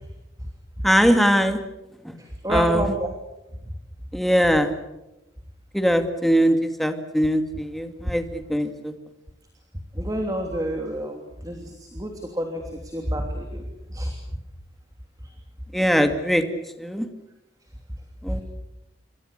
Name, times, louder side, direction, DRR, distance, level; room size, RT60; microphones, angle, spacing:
voice 1, 0.8-1.6 2.0-2.1 2.5-2.9 4.1-4.7 5.7-8.9 15.7-16.4 16.8-17.1 18.2-18.4, equal, ahead, 7 dB, 2.2 m, -21 dB
voice 2, 2.4-3.0 10.0-11.2 11.4-11.6 11.9-12.1 12.4-12.6 12.9-13.6 13.9-14.1, right 1 dB, 20° right, 3 dB, 3.0 m, -27 dB
28.0 x 25.0 x 6.7 m, 0.95 s
head